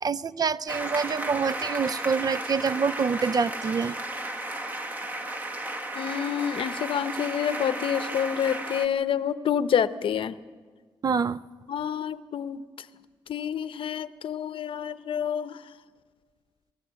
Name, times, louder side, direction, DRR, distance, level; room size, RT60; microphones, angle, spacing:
voice 1, 0.0-3.9 11.0-11.4, right 5 dB, 45° right, 0.5 m, -26 dB
sound 1, 0.7-8.9, right 1 dB, 20° right, 1.6 m, -34 dB
voice 2, 5.9-10.4 11.7-12.6 13.3-15.6, left 8 dB, 70° left, 0.7 m, -28 dB
20.0 x 18.5 x 7.5 m
cardioid pair, 75°, 9 cm